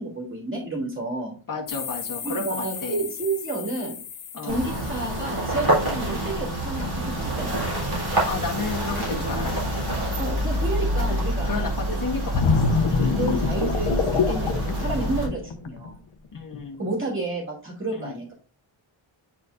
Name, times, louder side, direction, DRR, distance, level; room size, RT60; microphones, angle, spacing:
voice 1, 0.0-1.3 2.2-4.0 4.4-7.5 10.2-11.6 12.5-12.6 13.0-16.0 16.8-18.3, right 2 dB, 25° right, -2 dB, 2.8 m, -31 dB
voice 2, 1.5-3.0 4.3-4.6 8.3-9.8 11.0-11.2 11.4-13.2 16.3-16.8 17.9-18.1, left 4 dB, 40° left, 1 dB, 1.5 m, -32 dB
sound 1, 1.7-6.1, left 8 dB, 85° left, 1.1 m, -37 dB
sound 2, 4.5-15.3, right 1 dB, 50° right, 3.7 m, -27 dB
sound 3, 12.3-15.9 16.4-16.6, left 4 dB, 70° left, 0.8 m, -24 dB
9.7 x 4.4 x 2.6 m, 0.37 s
wide cardioid pair, 145°, 50 cm